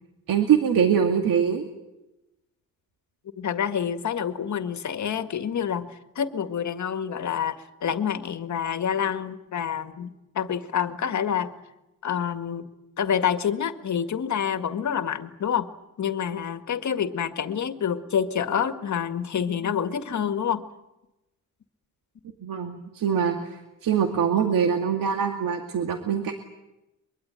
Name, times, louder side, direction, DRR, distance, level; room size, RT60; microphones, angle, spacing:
voice 1, 0.3-1.6 22.4-26.3, right 7 dB, 80° right, 5 dB, 2.5 m, -23 dB
voice 2, 3.4-10.1 10.3-11.5 12.0-12.7 13.0-15.7 16.0-20.7, left 8 dB, 60° left, 9 dB, 2.0 m, -27 dB
23.0 x 23.0 x 9.0 m, 0.95 s
cardioid pair, 105°, 33 cm